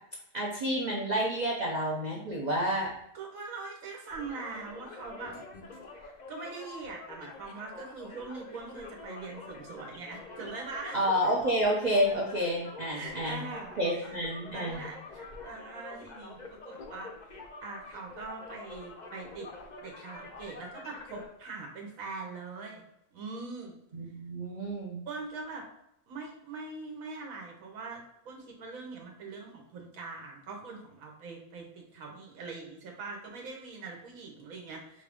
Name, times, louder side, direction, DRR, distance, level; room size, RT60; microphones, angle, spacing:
voice 1, 0.3-2.9 10.9-13.4 13.8-14.8 23.9-25.0, equal, 50° right, -2 dB, 0.5 m, -29 dB
voice 2, 3.1-5.4 6.0-11.0 12.9-14.2 14.5-19.5 19.8-22.8 23.1-23.8 25.1-25.7 26.1-35.0, right 4 dB, 80° right, 0 dB, 1.2 m, -42 dB
sound 1, 4.1-21.3, left 3 dB, 50° left, 0.5 m, -46 dB
5.1 x 2.4 x 3.4 m, 0.82 s
omnidirectional pair, 1.4 m